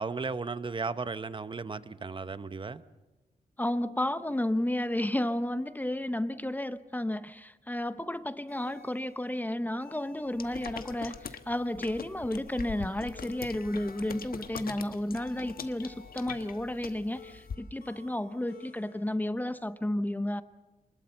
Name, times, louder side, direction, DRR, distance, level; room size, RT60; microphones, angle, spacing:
voice 1, 0.0-2.8, right 4 dB, 30° right, 13 dB, 0.8 m, -35 dB
voice 2, 3.6-20.4, left 1 dB, 10° left, 12 dB, 0.8 m, -32 dB
sound 1, 8.5-19.1, left 5 dB, 90° left, 6.0 m, -54 dB
sound 2, 10.4-17.5, left 6 dB, 70° left, 1.2 m, -43 dB
24.5 x 20.5 x 6.9 m, 1.2 s
wide cardioid pair, 120°, 16 cm